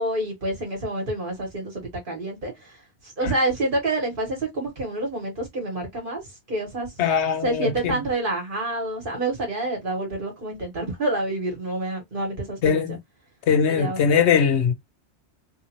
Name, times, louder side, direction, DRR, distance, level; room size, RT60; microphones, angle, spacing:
voice 1, 0.0-2.8 3.0-6.2 6.5-6.9 7.4-13.0 13.7-14.0, right 2 dB, 50° right, 1.7 m, -28 dB
voice 2, 7.0-8.0 12.6-13.0 13.5-14.7, left 7 dB, 75° left, 1.0 m, -21 dB
3.4 x 2.7 x 2.9 m
omnidirectional pair, 1.2 m